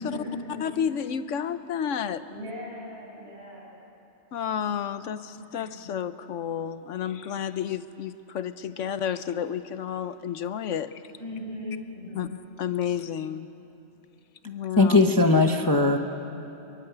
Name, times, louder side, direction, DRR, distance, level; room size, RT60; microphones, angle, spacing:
voice 1, 0.0-0.8 2.3-3.7 5.4-5.9 11.2-12.4, left 1 dB, 60° right, -3 dB, 7.3 m, -38 dB
voice 2, 0.6-2.2 4.3-10.9 12.1-13.5 14.4-15.1, left 8 dB, 80° left, 12 dB, 1.1 m, -31 dB
voice 3, 14.8-16.0, left 3 dB, 20° left, 4 dB, 0.8 m, -19 dB
24.0 x 22.5 x 8.0 m, 2.9 s
omnidirectional pair, 1.3 m